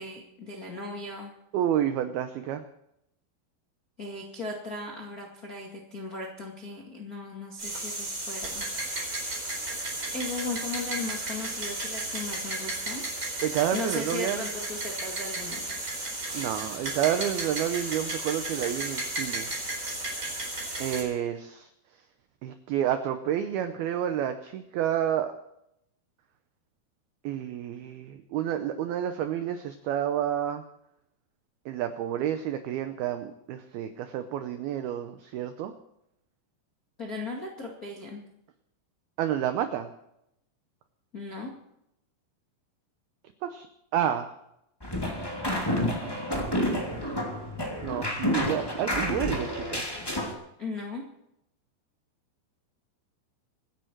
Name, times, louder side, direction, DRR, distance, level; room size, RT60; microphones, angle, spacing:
voice 1, 0.0-1.3 4.0-8.7 10.1-13.0 13.7-15.6 37.0-38.2 41.1-41.5 50.6-51.0, left 2 dB, 60° left, -1 dB, 0.9 m, -37 dB
voice 2, 1.5-2.6 13.4-14.4 16.3-19.5 20.8-21.7 22.4-25.3 27.2-30.6 31.7-35.7 39.2-39.9 43.4-43.7 43.9-44.3 46.0-46.6 46.9-47.3 47.8-49.9, right 10 dB, 80° right, 9 dB, 2.2 m, -30 dB
sound 1, 7.6-21.0, right 2 dB, 20° right, 4.2 m, -34 dB
sound 2, 44.8-50.3, left 1 dB, 10° left, 1.1 m, -29 dB
25.5 x 10.5 x 4.6 m, 0.81 s
omnidirectional pair, 5.5 m